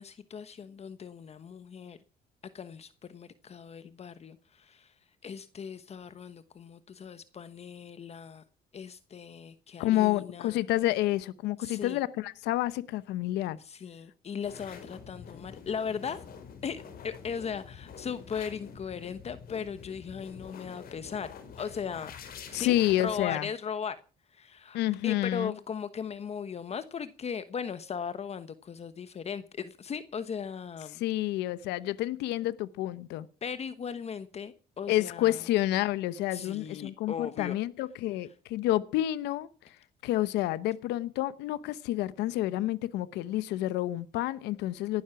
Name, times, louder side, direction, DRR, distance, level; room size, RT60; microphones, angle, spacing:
voice 1, 0.0-2.0 2.5-4.9 5.2-8.4 8.7-10.6 11.6-12.0 13.6-16.2 16.6-21.3 21.6-22.1 22.5-24.0 24.3-24.8 25.0-31.0 33.4-35.4 36.3-37.6, left 7 dB, 40° left, 1.2 m, -38 dB
voice 2, 9.8-13.6 22.5-23.5 24.7-25.5 30.9-33.3 34.9-39.5 40.0-45.0, left 15 dB, 90° left, 0.9 m, -29 dB
sound 1, 14.4-23.3, left 6 dB, 60° left, 4.7 m, -47 dB
18.0 x 12.0 x 5.9 m
cardioid pair, 110°, 17 cm